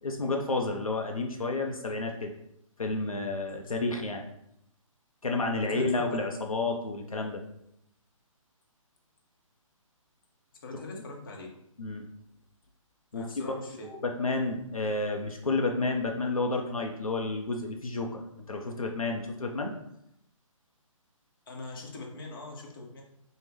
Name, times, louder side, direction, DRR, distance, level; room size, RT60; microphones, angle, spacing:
voice 1, 0.0-2.3 2.8-4.2 5.2-7.4 11.8-12.0 13.1-13.6 13.8-18.2 18.5-19.7, left 3 dB, 85° left, 2 dB, 0.5 m, -30 dB
voice 2, 5.7-6.2 10.6-11.5 13.1-13.9 21.5-23.0, left 2 dB, 40° left, 0 dB, 0.7 m, -42 dB
3.6 x 2.0 x 3.3 m, 0.78 s
figure-of-eight pair, 135°, 18 cm